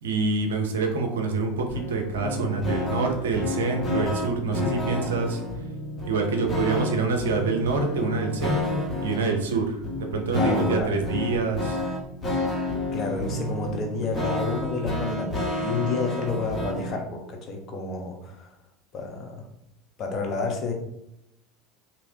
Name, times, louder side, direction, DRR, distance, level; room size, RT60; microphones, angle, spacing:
voice 1, 0.0-5.4 6.1-11.8, right 4 dB, 75° right, 3 dB, 0.6 m, -26 dB
sound 1, 1.7-17.0, left 1 dB, 20° left, 1.4 m, -30 dB
voice 2, 10.3-10.9 12.9-18.5 18.9-19.4 20.0-20.7, left 3 dB, 45° left, 2 dB, 0.9 m, -30 dB
3.1 x 2.8 x 2.7 m, 0.82 s
hypercardioid pair, 75°, 0 cm